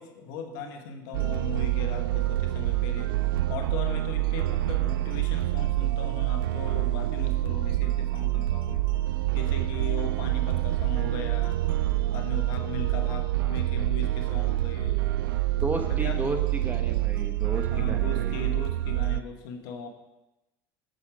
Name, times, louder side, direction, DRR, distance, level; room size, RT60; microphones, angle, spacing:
voice 1, 0.0-3.1 3.5-8.8 9.3-11.6 12.1-15.0 15.9-16.2 17.7-19.9, left 4 dB, 75° left, 5 dB, 1.4 m, -38 dB
sound 1, 1.1-19.2, right 15 dB, 90° right, 0.4 m, -27 dB
voice 2, 13.4-13.9 15.5-18.4, right 2 dB, 15° right, 5 dB, 1.3 m, -34 dB
8.2 x 7.3 x 5.0 m, 0.97 s
supercardioid pair, 95°, 11 cm